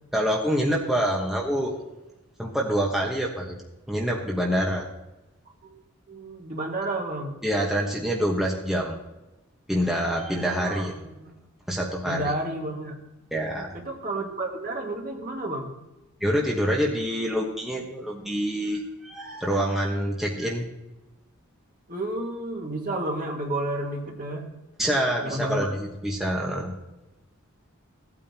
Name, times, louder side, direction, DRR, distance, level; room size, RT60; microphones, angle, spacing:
voice 1, 0.1-1.8 2.4-3.5 3.9-4.9 7.4-9.0 9.7-10.9 11.7-12.2 13.3-13.7 16.2-20.6 24.8-25.8 26.0-26.7, equal, ahead, -3 dB, 1.2 m, -26 dB
voice 2, 6.1-7.3 10.5-11.3 12.0-13.0 13.7-15.7 21.9-24.5 25.2-25.7, right 1 dB, 40° right, 0 dB, 1.9 m, -31 dB
16.5 x 9.0 x 2.9 m, 0.97 s
head